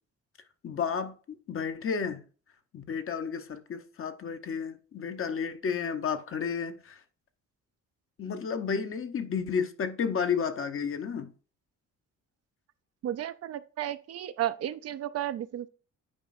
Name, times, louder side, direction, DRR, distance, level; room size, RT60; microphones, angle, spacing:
voice 1, 0.6-2.2 2.7-7.0 8.2-11.3, left 6 dB, 45° left, 0.8 m, -32 dB
voice 2, 13.0-15.7, right 12 dB, 55° right, 0.5 m, -33 dB
8.7 x 4.8 x 2.6 m
cardioid pair, 90°, 30 cm